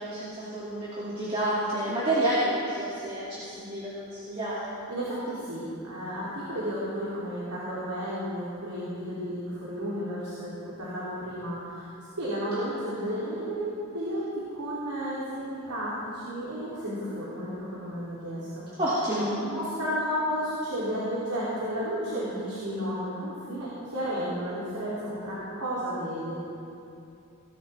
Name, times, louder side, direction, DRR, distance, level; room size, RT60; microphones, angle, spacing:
voice 1, 0.0-4.7 18.8-19.3, right 1 dB, 25° right, -10 dB, 2.5 m, -29 dB
voice 2, 4.9-11.9 12.2-18.6 19.4-26.3, equal, 85° right, -8 dB, 3.1 m, -32 dB
18.5 x 14.0 x 3.5 m, 2.7 s
head